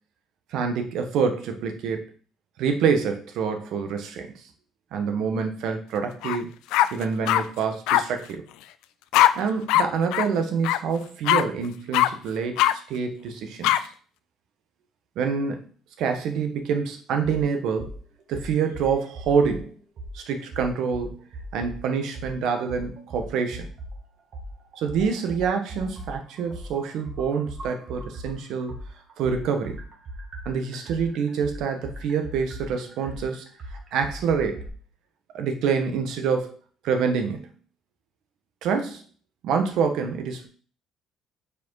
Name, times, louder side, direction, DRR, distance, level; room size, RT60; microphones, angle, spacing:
voice 1, 0.5-2.0 2.6-4.3 4.9-6.5 6.9-8.4 9.3-13.8 15.2-15.6 16.0-18.0 18.3-19.7 20.1-21.2 21.5-23.7 24.8-28.7 29.2-29.8 30.4-33.5 33.9-34.7 35.3-36.6 36.8-37.5 38.6-39.0 39.4-40.5, right 6 dB, 65° right, 5 dB, 1.2 m, -26 dB
sound 1, 6.2-6.4 6.7-7.4 7.9-8.0 9.1-9.3 9.7-9.8 10.1-10.3 10.6-10.8 11.3-11.4 11.9-12.1 12.6-12.7 13.6-13.8, left 14 dB, 90° left, 0.4 m, -19 dB
sound 2, 17.8-18.0 18.3-19.6 20.0-20.1 20.5-21.8 22.1-22.3 22.7-24.0 24.3-28.3 28.7-34.7, right 1 dB, 40° right, 1.6 m, -38 dB
5.0 x 4.9 x 4.7 m, 0.42 s
cardioid pair, 155°, 0 cm